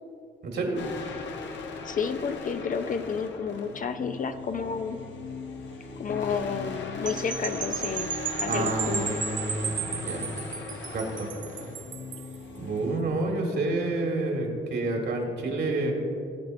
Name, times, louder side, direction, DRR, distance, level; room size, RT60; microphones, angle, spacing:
voice 1, 0.4-0.8 8.5-10.3 10.9-11.3 12.6-15.9, right 2 dB, 60° right, 0 dB, 2.0 m, -29 dB
sound 1, 0.8-13.0, left 3 dB, 65° left, 1.0 m, -38 dB
voice 2, 1.8-5.0 6.0-9.2, left 6 dB, 45° left, 9 dB, 0.5 m, -31 dB
sound 2, 7.0-12.3, right 6 dB, 40° right, 0.7 m, -34 dB
18.0 x 7.8 x 2.6 m, 2.6 s
cardioid pair, 90°, 20 cm